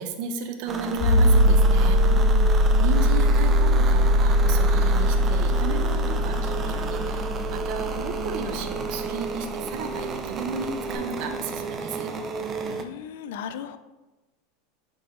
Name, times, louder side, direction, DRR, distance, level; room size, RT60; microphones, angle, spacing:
voice 1, 0.0-2.0 2.8-12.1, right 4 dB, 60° right, 6 dB, 0.8 m, -34 dB
sound 1, 0.7-12.9, right 5 dB, 30° right, 0.5 m, -32 dB
sound 2, 1.0-9.4 10.9-11.0, left 1 dB, 60° left, 2.0 m, -20 dB
voice 2, 2.1-2.7 12.7-13.8, left 8 dB, 75° left, 12 dB, 0.4 m, -37 dB
sound 3, 4.3-12.8, left 2 dB, 15° left, 1.1 m, -42 dB
7.3 x 4.5 x 3.2 m, 1.1 s
supercardioid pair, 125°, 0 cm